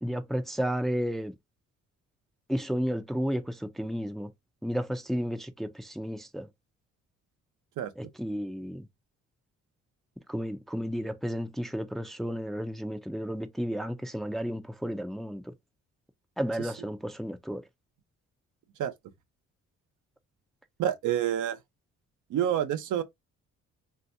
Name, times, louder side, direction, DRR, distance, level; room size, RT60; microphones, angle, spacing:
voice 1, 0.0-1.3 2.5-4.3 4.6-6.5 8.0-8.9 10.3-15.5 16.4-17.6, equal, ahead, 0.5 m, -32 dB
voice 2, 20.8-21.6 22.3-23.0, right 10 dB, 80° right, 0.8 m, -27 dB
3.3 x 2.7 x 2.6 m
cardioid pair, 90°, 30 cm